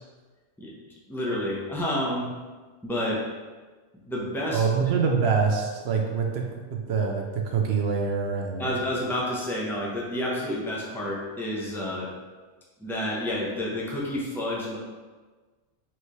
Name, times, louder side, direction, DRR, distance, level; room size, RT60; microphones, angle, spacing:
voice 1, 1.1-2.3 2.8-3.2 4.1-4.7 8.6-12.1 12.8-14.8, left 1 dB, 5° left, -4 dB, 0.5 m, -29 dB
voice 2, 4.5-8.8, right 5 dB, 65° right, 2 dB, 0.8 m, -25 dB
4.5 x 3.3 x 3.1 m, 1.4 s
omnidirectional pair, 1.2 m